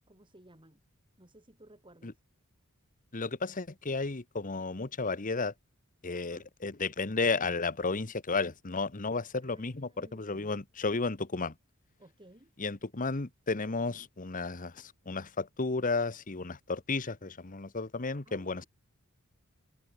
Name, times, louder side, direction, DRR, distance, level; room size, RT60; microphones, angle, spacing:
voice 1, 0.1-0.8 1.2-2.2 6.1-6.5 9.4-10.5 12.0-12.5 18.2-18.7, right 1 dB, 20° right, 3.5 m, -57 dB
voice 2, 3.1-5.5 6.0-11.5 12.6-18.6, left 3 dB, 35° left, 1.1 m, -33 dB
head